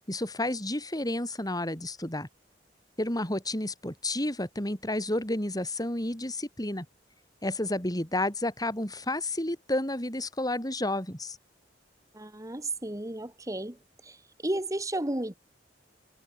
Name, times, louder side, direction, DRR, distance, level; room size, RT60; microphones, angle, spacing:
voice 1, 0.1-2.3 3.0-6.9 7.4-11.4, left 1 dB, 20° left, 6.3 m, -31 dB
voice 2, 12.1-13.8 14.0-14.2 14.4-15.3, right 1 dB, 20° right, 1.8 m, -33 dB
head